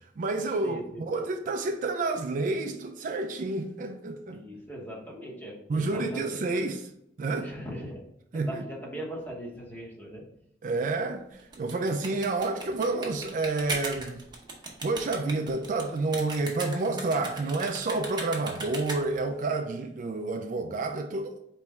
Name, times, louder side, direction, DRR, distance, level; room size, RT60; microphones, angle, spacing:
voice 1, 0.0-4.4 5.7-6.9 7.2-7.5 8.3-8.6 10.6-14.3 14.8-21.4, right 3 dB, 45° right, 0.3 m, -29 dB
voice 2, 0.6-1.1 4.3-6.2 7.4-8.0 8.3-10.3, right 1 dB, 10° left, 0.9 m, -40 dB
sound 1, 11.4-19.3, right 2 dB, 25° right, 0.8 m, -38 dB
4.3 x 3.0 x 3.4 m
head